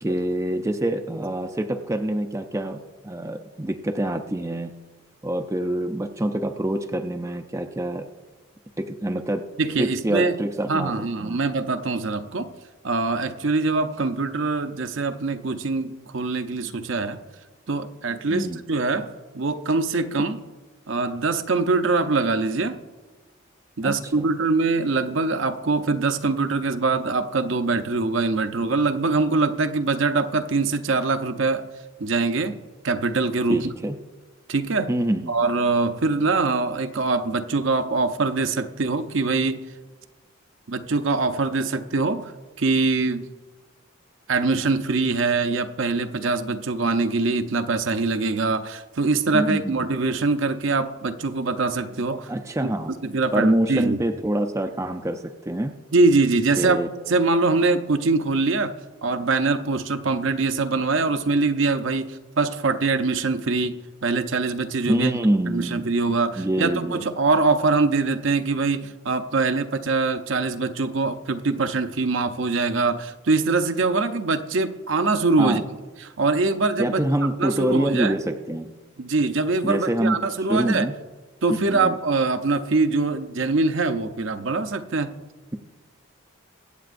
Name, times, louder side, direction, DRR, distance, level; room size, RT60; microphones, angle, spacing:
voice 1, 0.0-4.7 5.2-8.1 8.8-9.5 9.8-10.9 11.2-11.4 18.3-18.6 23.8-24.3 33.5-34.0 34.9-35.4 49.3-49.8 52.3-52.9 53.3-55.7 56.6-56.9 64.9-65.8 66.4-67.0 75.4-75.7 76.8-78.7 79.6-80.2 80.5-80.9 81.7-81.9, right 1 dB, 15° right, 5 dB, 0.5 m, -25 dB
voice 2, 9.6-10.3 10.7-12.5 12.8-17.2 17.7-20.4 20.9-22.8 23.8-31.7 32.0-32.6 32.8-33.7 34.5-34.9 35.3-39.6 40.7-42.3 42.6-43.3 44.3-52.3 52.6-52.7 53.0-54.0 55.9-56.8 57.1-58.7 59.0-65.1 65.5-75.6 76.0-77.0 77.4-78.1 79.0-80.9 81.4-85.2, right 3 dB, 60° right, 8 dB, 0.6 m, -23 dB
23.0 x 8.3 x 2.6 m, 1.3 s
head